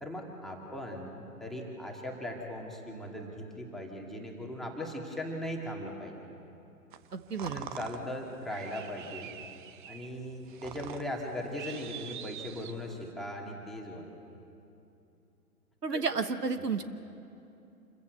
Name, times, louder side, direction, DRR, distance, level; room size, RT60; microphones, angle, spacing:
voice 1, 0.0-6.1 7.5-9.3 9.9-14.1 15.9-16.0, left 1 dB, ahead, -1 dB, 2.2 m, -39 dB
sound 1, 6.9-13.1, right 9 dB, 35° right, 0.8 m, -45 dB
voice 2, 7.1-7.7 15.8-16.8, right 5 dB, 85° right, 10 dB, 1.3 m, -32 dB
27.0 x 15.0 x 8.3 m, 2.8 s
figure-of-eight pair, 125°, 46 cm